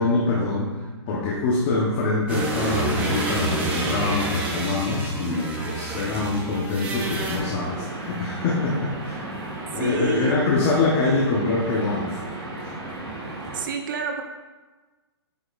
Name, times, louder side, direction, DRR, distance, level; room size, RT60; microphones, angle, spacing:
voice 1, 0.0-9.2 9.7-12.2, left 3 dB, 25° left, -5 dB, 1.1 m, -24 dB
sound 1, 2.3-7.4, right 2 dB, 10° right, 0.8 m, -28 dB
sound 2, 7.0-13.6, right 2 dB, 30° right, 1.9 m, -35 dB
voice 2, 9.7-10.4 13.5-14.2, right 5 dB, 45° right, 3 dB, 1.0 m, -29 dB
8.3 x 6.6 x 2.6 m, 1.3 s
hypercardioid pair, 165°, 14 cm